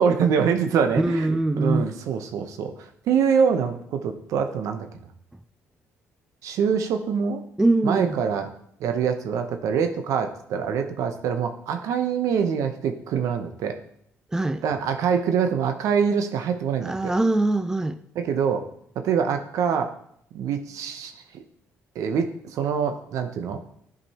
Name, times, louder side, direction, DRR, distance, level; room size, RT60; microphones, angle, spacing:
voice 1, 0.0-1.3 1.6-4.9 6.4-7.4 7.8-8.5 8.8-13.8 14.6-17.1 18.1-18.7 19.0-19.9 20.3-21.4 21.9-23.6, right 7 dB, 75° right, 7 dB, 0.8 m, -24 dB
voice 2, 1.0-1.9 7.6-8.2 14.3-14.6 16.8-18.0, right 2 dB, 10° right, 11 dB, 0.4 m, -22 dB
11.0 x 5.1 x 2.9 m, 0.69 s
cardioid pair, 85°, 6 cm